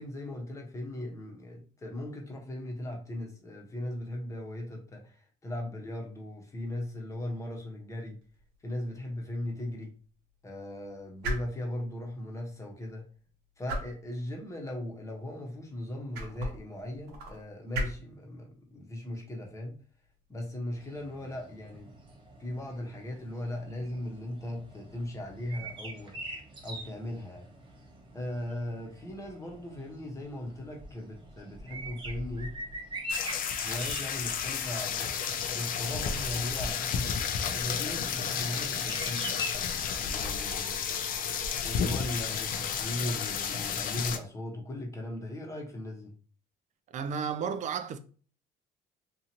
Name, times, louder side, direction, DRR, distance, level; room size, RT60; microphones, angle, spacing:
voice 1, 0.0-8.2 8.6-9.9 10.4-13.1 13.6-19.8 20.3-21.9 22.4-26.2 26.6-27.5 28.1-32.6 33.6-35.2 35.5-39.3 40.0-41.1 41.6-46.1, left 1 dB, 20° left, 0.9 m, -38 dB
sound 1, 8.2-21.8, right 1 dB, 75° right, 0.9 m, -42 dB
sound 2, 20.7-39.5, right 1 dB, 30° right, 0.8 m, -44 dB
sound 3, 33.1-44.2, left 7 dB, 55° left, 0.4 m, -32 dB
voice 2, 46.9-48.0, right 6 dB, 45° right, 0.4 m, -32 dB
2.7 x 2.5 x 2.8 m
cardioid pair, 110°, 17 cm